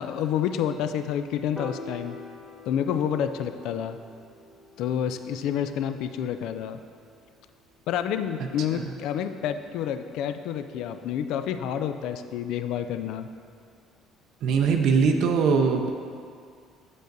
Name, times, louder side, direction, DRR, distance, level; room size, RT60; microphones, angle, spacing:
voice 1, 0.0-2.2 2.7-4.0 4.8-6.8 7.9-13.3, left 9 dB, 75° left, 9 dB, 0.3 m, -29 dB
Piano, 1.6-7.9, left 1 dB, 20° left, 1.1 m, -45 dB
voice 2, 14.4-15.9, right 5 dB, 65° right, 4 dB, 0.5 m, -22 dB
7.9 x 5.2 x 3.9 m, 2.2 s
supercardioid pair, 95°, 0 cm